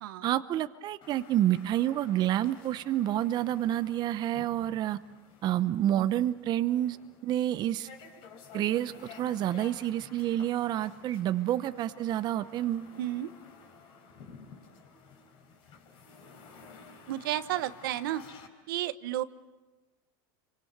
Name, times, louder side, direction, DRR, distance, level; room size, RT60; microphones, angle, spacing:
voice 1, 0.2-5.0 5.4-7.0 7.2-7.9 8.5-12.9, right 12 dB, 40° right, 12 dB, 0.8 m, -29 dB
sound 1, 1.0-18.5, left 5 dB, 50° left, 4.3 m, -53 dB
voice 2, 13.0-13.3 17.1-18.2 18.7-19.2, right 14 dB, 80° right, 12 dB, 1.1 m, -32 dB
28.0 x 24.5 x 6.8 m, 1.2 s
supercardioid pair, 125°, 11 cm